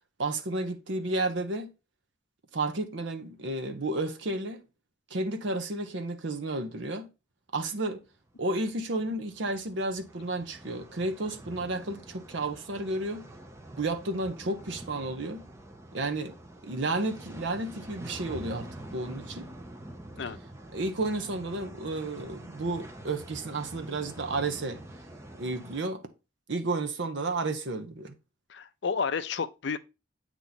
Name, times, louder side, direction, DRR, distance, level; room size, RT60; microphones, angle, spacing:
voice 1, 0.2-1.7 2.5-4.6 5.1-7.1 7.5-8.0 8.4-13.2 13.8-15.4 15.9-16.3 16.6-19.5 20.7-24.8 25.4-26.0 26.5-28.1, right 2 dB, 65° right, 0.8 m, -32 dB
sound 1, 8.2-25.8, right 1 dB, 15° right, 0.6 m, -46 dB
voice 2, 28.5-29.8, left 5 dB, 60° left, 0.4 m, -31 dB
8.2 x 3.0 x 4.0 m
head